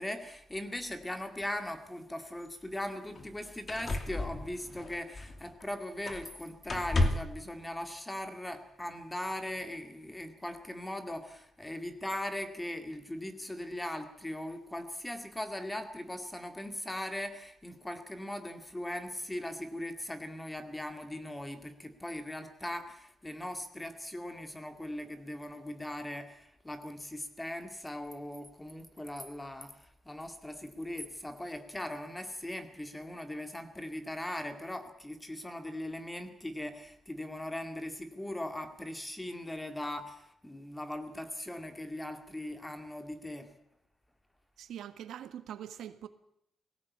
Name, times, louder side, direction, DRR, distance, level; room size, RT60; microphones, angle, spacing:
voice 1, 0.0-29.7 30.1-43.5, left 1 dB, 10° left, 2.1 m, -39 dB
sound 1, 2.4-2.5 3.1-3.3 3.7-5.6 6.0-6.4 6.7-7.4 8.6-8.7, left 2 dB, 35° left, 2.6 m, -33 dB
voice 2, 44.6-46.1, right 10 dB, 85° right, 1.5 m, -43 dB
19.5 x 17.0 x 8.4 m
cardioid pair, 140°, 0 cm